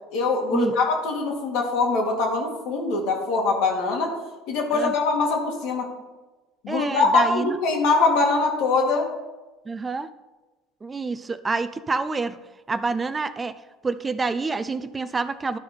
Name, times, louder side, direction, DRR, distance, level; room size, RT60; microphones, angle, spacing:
voice 1, 0.1-4.1 4.5-5.9 6.6-9.1, left 3 dB, 70° left, 1 dB, 2.3 m, -23 dB
voice 2, 6.7-7.6 9.7-10.1 10.8-12.4 12.7-15.6, right 4 dB, 20° right, 13 dB, 0.4 m, -27 dB
12.0 x 4.7 x 5.2 m, 1.2 s
supercardioid pair, 100°, 0 cm